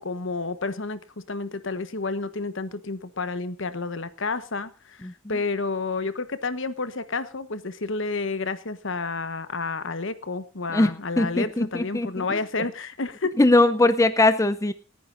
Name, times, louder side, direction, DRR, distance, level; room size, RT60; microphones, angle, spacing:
voice 1, 0.0-13.3, left 3 dB, 65° left, 13 dB, 1.2 m, -30 dB
voice 2, 11.2-12.2 13.4-14.7, left 2 dB, 15° left, 10 dB, 0.6 m, -20 dB
29.0 x 9.8 x 2.6 m, 0.29 s
head